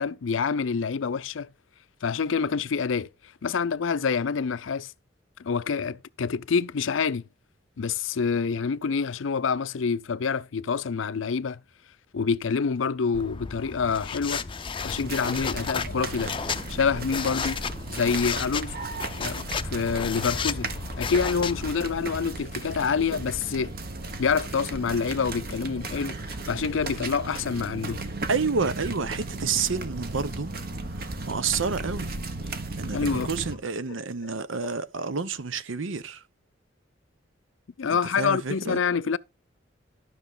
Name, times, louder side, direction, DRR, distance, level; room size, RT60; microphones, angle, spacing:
voice 1, 0.0-1.5 2.0-3.1 3.4-4.9 5.4-7.2 7.8-11.6 12.1-14.4 14.8-16.3 16.7-17.6 17.9-18.7 19.2-19.4 19.7-20.7 21.0-23.7 24.2-28.0 32.9-33.3 33.9-34.0 34.6-34.7 37.8-39.2, left 5 dB, 75° left, 0.5 m, -27 dB
sound 1, 13.1-21.7, left 5 dB, 25° left, 0.5 m, -33 dB
sound 2, 14.9-33.5, right 2 dB, 50° right, 1.2 m, -36 dB
voice 2, 28.3-30.5 31.3-32.1 32.8-36.2 37.9-38.8, right 5 dB, 85° right, 0.8 m, -29 dB
12.5 x 6.2 x 3.9 m
head